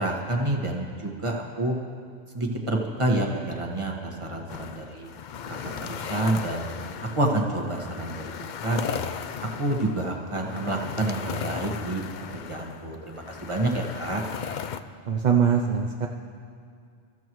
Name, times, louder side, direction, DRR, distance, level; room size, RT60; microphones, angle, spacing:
voice 1, 0.0-1.7 2.3-5.1 5.5-6.6 7.1-9.1 9.6-12.0 12.3-14.2, right 1 dB, 25° right, 0 dB, 1.5 m, -28 dB
sound 1, 4.5-14.8, left 7 dB, 60° left, 0.5 m, -37 dB
voice 2, 15.1-16.1, right 7 dB, 45° right, 2 dB, 0.6 m, -22 dB
26.0 x 14.0 x 3.1 m, 2.3 s
omnidirectional pair, 1.3 m